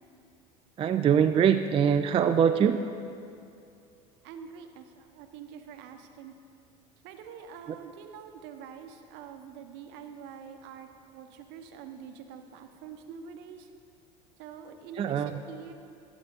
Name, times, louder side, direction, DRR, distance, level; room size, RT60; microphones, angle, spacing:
voice 1, 0.8-2.8 15.0-15.3, right 8 dB, 30° right, 8 dB, 0.4 m, -23 dB
voice 2, 4.2-6.3 7.0-13.7 14.4-15.7, right 7 dB, 60° right, 7 dB, 1.0 m, -45 dB
13.5 x 6.2 x 5.2 m, 2.5 s
hypercardioid pair, 75°, 20 cm